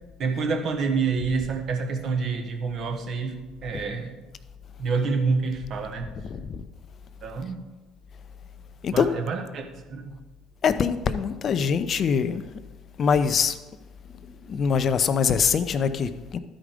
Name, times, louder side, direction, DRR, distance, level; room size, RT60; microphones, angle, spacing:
voice 1, 0.2-4.2 4.8-6.2 7.2-7.6 8.9-10.2, right 4 dB, 55° right, 4 dB, 1.5 m, -28 dB
voice 2, 6.2-6.6 8.8-9.1 10.6-12.4 13.0-13.6 14.4-16.4, left 6 dB, 50° left, 11 dB, 0.7 m, -23 dB
12.5 x 5.1 x 5.1 m, 1.2 s
hypercardioid pair, 65°, 0 cm